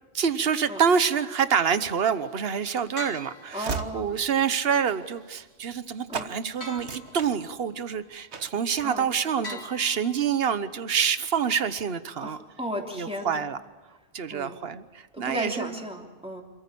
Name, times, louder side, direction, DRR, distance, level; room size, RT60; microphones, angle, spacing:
voice 1, 0.1-12.4 12.9-13.6 14.1-15.8, right 7 dB, 65° right, 12 dB, 1.3 m, -27 dB
Train / Slam, 2.2-5.9 6.1-6.3 6.7-7.9 8.3-8.6, right 5 dB, 85° right, 1.6 m, -38 dB
sound 1, 3.0-4.2 6.6-7.7 9.4-10.7, left 1 dB, 70° left, 3.2 m, -42 dB
voice 2, 3.5-4.1 6.1-6.3 8.8-9.1 9.4-9.6 12.2-13.4 14.3-14.6 15.1-16.4, equal, 5° right, 1 dB, 3.2 m, -35 dB
27.0 x 14.5 x 8.5 m, 1.4 s
omnidirectional pair, 1.1 m